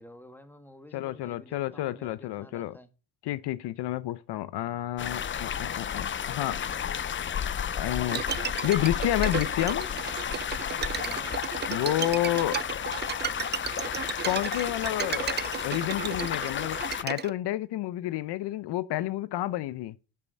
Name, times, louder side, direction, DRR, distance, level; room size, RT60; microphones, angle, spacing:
voice 1, 0.0-2.9 11.0-11.3, left 1 dB, 5° left, 1.5 m, -50 dB
voice 2, 0.9-2.7 3.2-6.6 7.7-8.2 8.6-9.9 11.7-12.6 14.2-20.0, left 14 dB, 80° left, 0.7 m, -30 dB
sound 1, 5.0-17.0, left 8 dB, 30° left, 0.5 m, -32 dB
Bowed string instrument, 8.1-17.3, right 8 dB, 25° right, 0.4 m, -34 dB
10.5 x 5.6 x 6.4 m
cardioid pair, 100°, 40 cm